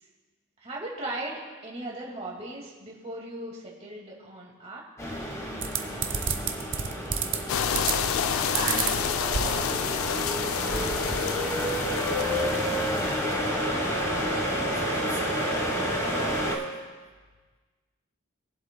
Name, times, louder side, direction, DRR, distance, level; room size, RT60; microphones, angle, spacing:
voice 1, 0.6-4.8, right 1 dB, 30° right, -3 dB, 2.0 m, -38 dB
sound 1, 5.0-16.6, equal, 15° left, 1.1 m, -29 dB
sound 2, 5.6-7.4 7.7-8.2 8.6-9.8 10.2-10.3 10.5-11.2, right 7 dB, 55° right, 0.7 m, -30 dB
sound 3, 7.5-13.4, left 7 dB, 75° left, 0.4 m, -29 dB
voice 2, 8.3-13.9 14.2-14.5 14.9-15.3 15.8-16.9, right 3 dB, 80° right, -3 dB, 1.3 m, -42 dB
21.5 x 7.7 x 2.2 m, 1.4 s
head